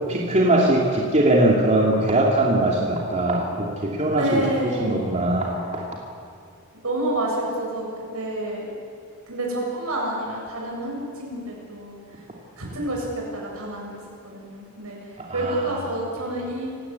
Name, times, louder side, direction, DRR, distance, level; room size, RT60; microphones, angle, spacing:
voice 1, 0.1-4.5 4.8-5.9 15.2-15.6, right 1 dB, 30° right, -2 dB, 2.8 m, -21 dB
voice 2, 4.0-5.3 6.8-7.9 8.1-8.7 9.3-12.0 12.6-15.0 15.3-16.7, right 1 dB, 75° right, -1 dB, 7.8 m, -28 dB
28.0 x 17.0 x 8.5 m, 2.4 s
head